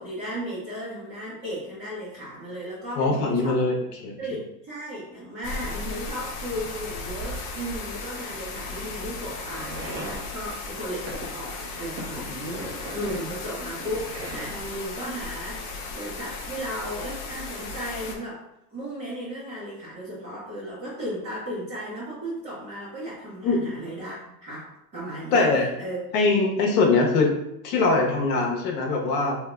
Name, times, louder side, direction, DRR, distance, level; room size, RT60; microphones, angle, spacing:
voice 1, 0.0-3.6 4.2-18.4 18.7-25.5 25.8-26.0, equal, 25° right, -10 dB, 1.2 m, -35 dB
voice 2, 3.0-3.8 4.0-4.2 23.4-23.8 25.3-25.7 26.1-27.3 27.6-29.4, left 3 dB, 65° left, 0 dB, 1.0 m, -22 dB
sound 1, 5.4-18.2, left 3 dB, 45° left, 0.7 m, -36 dB
sound 2, 8.4-14.9, right 1 dB, 90° right, 1.2 m, -40 dB
3.7 x 2.8 x 2.3 m, 0.83 s
supercardioid pair, 115°, 47 cm